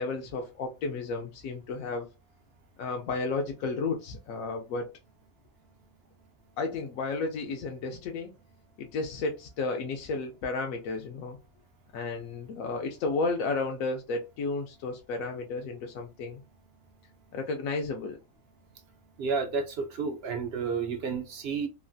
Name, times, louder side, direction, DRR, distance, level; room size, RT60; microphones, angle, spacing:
voice 1, 0.0-2.1 2.8-4.9 6.6-8.3 8.8-11.4 11.9-16.4 17.3-18.2, left 3 dB, 75° left, 1.0 m, -32 dB
voice 2, 19.2-21.7, right 5 dB, 65° right, 0.6 m, -31 dB
3.1 x 2.4 x 2.5 m
omnidirectional pair, 1.5 m